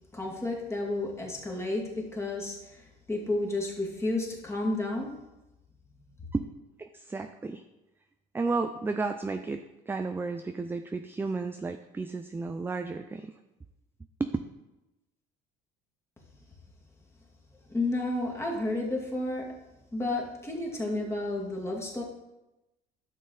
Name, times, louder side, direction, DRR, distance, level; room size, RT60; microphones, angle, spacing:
voice 1, 0.1-5.1 5.9-6.0 17.5-19.5 19.9-22.0, left 2 dB, 15° left, -1 dB, 2.2 m, -31 dB
voice 2, 6.8-7.6 8.3-9.6 9.9-13.4 14.2-14.3, right 3 dB, 10° right, 7 dB, 0.4 m, -32 dB
11.5 x 6.5 x 4.0 m, 0.98 s
cardioid pair, 115°, 20 cm